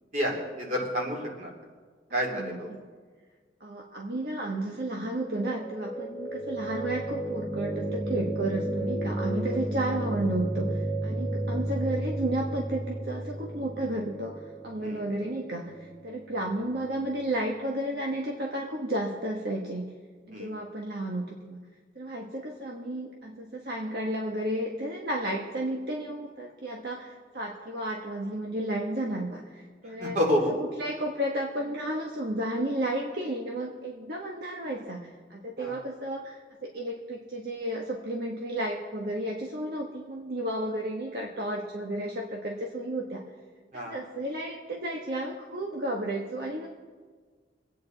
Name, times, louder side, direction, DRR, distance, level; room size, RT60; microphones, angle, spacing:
voice 1, 0.1-1.5 2.1-2.7 14.8-15.0 20.3-20.5 30.0-30.5 35.6-35.8 43.7-44.0, equal, 45° right, -1 dB, 3.0 m, -29 dB
voice 2, 2.2-2.8 3.6-19.9 20.3-21.6 21.9-30.2 30.5-43.2 43.7-46.7, right 1 dB, 65° right, 0 dB, 1.3 m, -32 dB
sound 1, 5.2-17.3, right 1 dB, 5° right, 0.7 m, -33 dB
24.0 x 9.2 x 4.0 m, 1.5 s
head